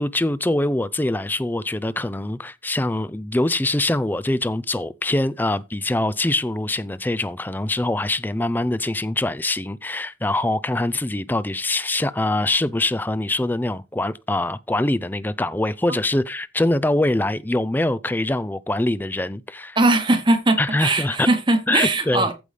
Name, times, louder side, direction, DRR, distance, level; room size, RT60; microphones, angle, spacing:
voice 1, 0.0-19.8 20.6-21.3 21.7-22.3, left 1 dB, 10° left, 0.4 m, -23 dB
voice 2, 19.7-22.3, right 2 dB, 25° right, 1.1 m, -20 dB
14.5 x 5.4 x 3.3 m
head